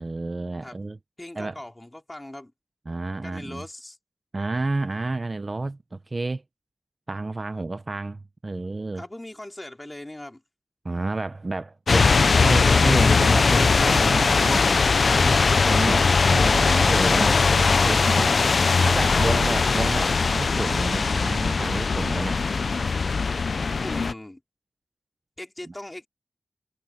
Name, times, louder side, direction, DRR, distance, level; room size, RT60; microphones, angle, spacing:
voice 1, 0.0-1.0 1.4-1.6 2.9-3.6 4.3-6.4 7.1-9.0 10.8-14.6 15.2-18.3 18.8-22.4 25.7-25.8, right 2 dB, 40° right, 0.8 m, -30 dB
voice 2, 1.2-2.5 3.2-4.0 8.9-10.4 23.6-24.4 25.4-26.1, left 1 dB, 20° left, 3.4 m, -40 dB
sound 1, 11.9-24.1, left 4 dB, 70° left, 0.6 m, -20 dB
sound 2, 13.2-15.6 15.9-17.7, right 3 dB, 60° right, 1.8 m, -35 dB
wide cardioid pair, 70°, 0 cm